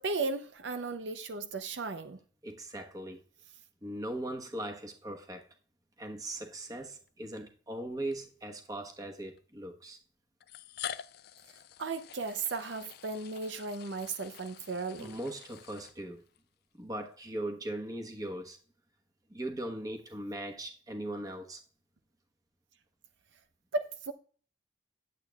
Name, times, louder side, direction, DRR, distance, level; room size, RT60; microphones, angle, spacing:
voice 1, 0.0-2.2 11.8-15.2 23.7-24.1, right 3 dB, 65° right, 0.6 m, -35 dB
voice 2, 2.4-3.2 3.8-5.5 6.0-10.0 15.0-16.2 16.8-18.6 19.3-21.6, right 1 dB, 20° right, 1.1 m, -39 dB
sound 1, 7.0-7.1 8.1-8.2 9.4-9.5 10.4-16.4, left 10 dB, 55° left, 0.3 m, -46 dB
11.0 x 8.1 x 2.3 m
head